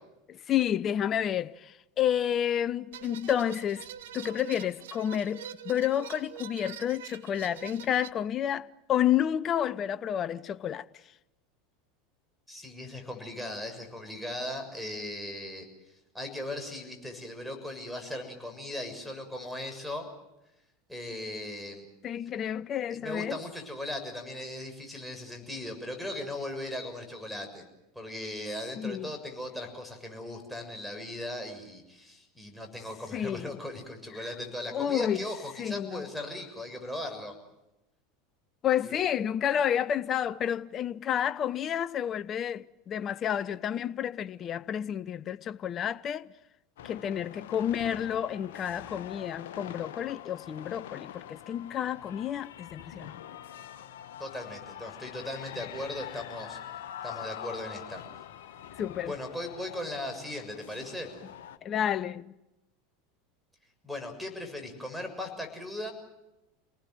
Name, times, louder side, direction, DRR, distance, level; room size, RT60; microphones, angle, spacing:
voice 1, 0.3-3.8 4.1-10.8 22.0-23.4 28.8-29.1 33.1-33.5 34.2-34.3 34.7-35.2 35.6-36.0 38.6-46.3 46.8-53.1 58.8-59.1 61.6-62.3, left 10 dB, 35° left, 0.8 m, -30 dB
sound 1, 2.9-8.1, right 10 dB, 65° right, 1.1 m, -45 dB
voice 2, 12.5-15.7 16.1-20.1 20.9-21.8 22.9-27.6 28.0-37.3 38.8-39.0 54.2-56.6 57.0-58.0 59.1-61.1 63.8-65.9, left 1 dB, ahead, 6.9 m, -38 dB
sound 2, 46.8-61.6, left 10 dB, 65° left, 1.5 m, -44 dB
29.5 x 19.5 x 7.9 m
figure-of-eight pair, 80°, 0 cm